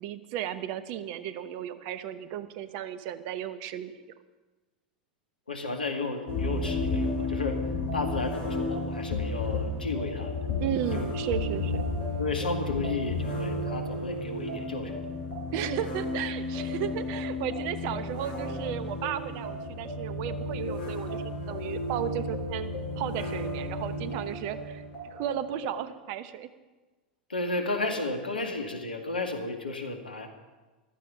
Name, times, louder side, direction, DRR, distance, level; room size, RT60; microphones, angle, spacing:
voice 1, 0.0-3.9 10.6-11.9 15.5-24.8 25.1-26.5, right 10 dB, 45° right, 13 dB, 0.9 m, -34 dB
voice 2, 5.5-7.6 7.9-10.4 10.9-11.1 12.2-15.0 27.3-30.3, left 3 dB, 80° left, 5 dB, 2.0 m, -33 dB
sound 1, 6.3-25.8, left 2 dB, 60° left, 5.3 m, -33 dB
15.0 x 13.0 x 5.8 m, 1.2 s
figure-of-eight pair, 90°, 5 cm